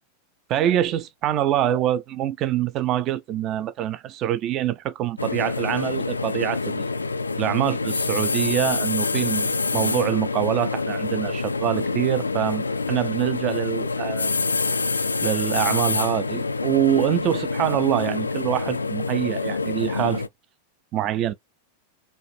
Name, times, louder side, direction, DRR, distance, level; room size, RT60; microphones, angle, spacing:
voice 1, 0.5-6.9 7.4-14.4 15.2-20.3 20.9-21.3, right 11 dB, 35° right, 0.6 m, -25 dB
sound 1, 5.2-20.3, left 3 dB, 80° left, 0.4 m, -26 dB
5.3 x 3.3 x 2.2 m
figure-of-eight pair, 90°, 0 cm